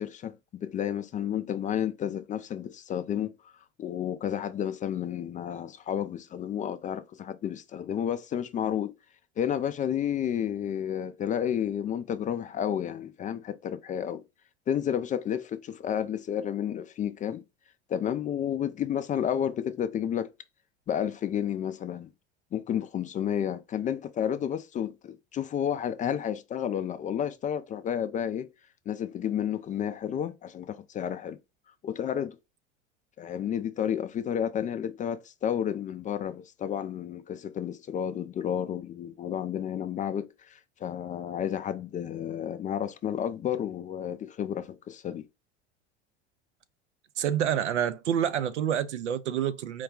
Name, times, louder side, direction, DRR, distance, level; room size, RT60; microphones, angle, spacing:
voice 1, 0.0-3.5 3.8-8.9 9.4-14.2 14.7-17.4 17.9-20.3 20.9-22.1 22.5-28.5 28.9-31.4 31.8-32.4 33.2-45.3, left 9 dB, 25° left, 0.3 m, -31 dB
voice 2, 47.2-49.8, right 9 dB, 85° right, 0.5 m, -28 dB
4.7 x 2.2 x 3.6 m
hypercardioid pair, 80°, 34 cm